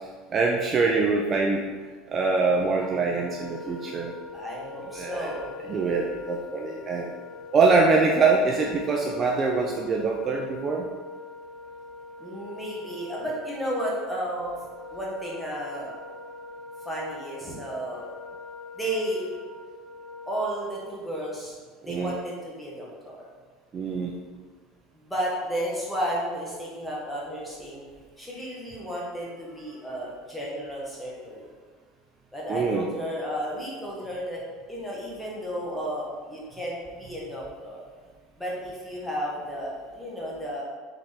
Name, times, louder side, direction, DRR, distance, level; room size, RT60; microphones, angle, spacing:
voice 1, 0.3-1.6 2.1-4.1 4.9-5.4 5.7-7.1 7.5-10.9 21.8-22.2 23.7-24.1 32.5-32.9, right 4 dB, 35° right, 0 dB, 0.5 m, -24 dB
Wind instrument woodwind instrument, 2.8-20.9, left 3 dB, 25° left, 1.4 m, -43 dB
voice 2, 4.3-5.6 12.2-14.6 14.9-16.0 16.8-18.1 18.7-19.3 20.3-21.5 21.8-23.3 25.1-27.9 28.2-31.5 32.3-34.4 34.7-37.9 38.4-40.6, equal, 5° left, -5 dB, 1.4 m, -33 dB
4.1 x 3.6 x 3.6 m, 1.5 s
supercardioid pair, 115°, 0 cm